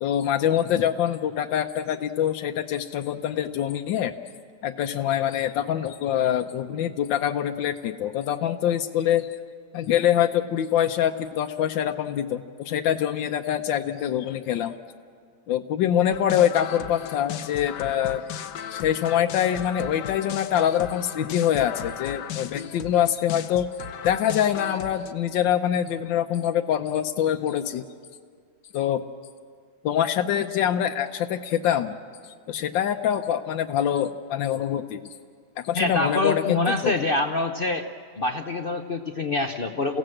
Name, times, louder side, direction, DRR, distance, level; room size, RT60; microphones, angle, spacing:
voice 1, 0.0-4.1 4.6-9.3 9.7-14.8 15.5-18.2 18.7-23.7 24.0-27.8 28.7-29.1 29.8-32.0 32.5-35.0 35.6-36.9, left 10 dB, 90° left, 6 dB, 1.5 m, -24 dB
sound 1, 16.1-25.1, left 9 dB, 70° left, 1.4 m, -36 dB
voice 2, 35.7-37.9 38.2-40.0, left 2 dB, 50° left, 6 dB, 0.7 m, -25 dB
28.5 x 16.5 x 7.8 m, 2.1 s
omnidirectional pair, 2.0 m